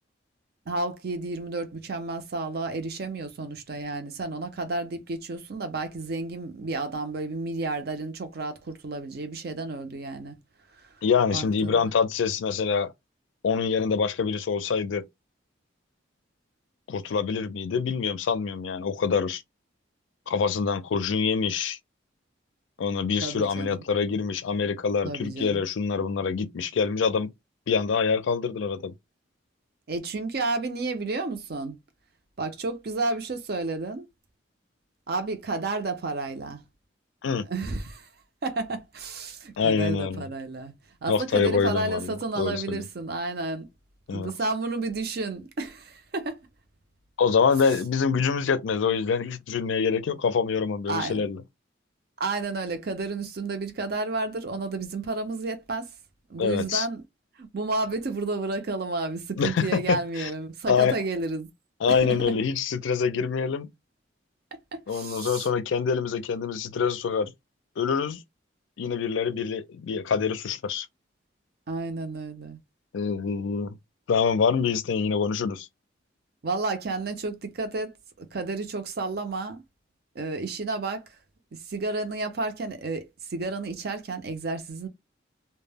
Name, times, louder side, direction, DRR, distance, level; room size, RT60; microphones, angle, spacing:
voice 1, 0.7-10.4 11.3-11.8 23.2-23.8 25.0-25.6 29.9-31.8 32.4-34.1 35.1-36.6 37.5-38.1 38.4-40.7 41.0-43.7 44.1-46.4 50.9-51.3 52.2-55.9 56.3-57.0 57.4-61.5 61.9-62.3 64.5-65.5 71.7-72.6 76.4-79.6 80.1-81.1 81.6-84.9, right 3 dB, 55° right, 0.5 m, -31 dB
voice 2, 11.0-12.9 13.4-15.1 16.9-19.4 20.3-21.8 22.8-27.3 27.7-28.9 37.2-37.5 39.6-40.2 41.1-42.8 44.1-44.3 47.2-51.4 56.4-56.9 59.4-60.3 60.7-61.0 61.8-63.7 64.9-67.3 67.8-68.2 68.8-70.9 72.9-73.8 74.1-75.7, left 5 dB, 80° left, 0.4 m, -25 dB
2.1 x 2.0 x 3.3 m
head